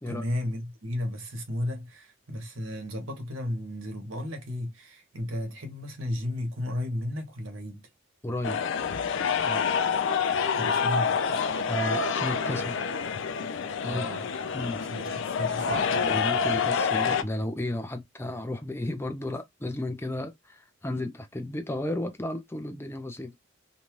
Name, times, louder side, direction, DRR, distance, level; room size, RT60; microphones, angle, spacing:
voice 1, 0.1-7.8 10.5-11.2 13.8-14.2 14.8-15.9 20.9-21.0, left 1 dB, 80° right, 1.0 m, -34 dB
voice 2, 8.2-8.6 9.4-9.7 11.7-12.8 13.8-14.1 14.5-14.8 16.0-23.3, left 1 dB, 10° left, 0.5 m, -33 dB
sound 1, 8.4-17.2, left 6 dB, 65° left, 0.4 m, -27 dB
2.7 x 2.3 x 3.1 m
head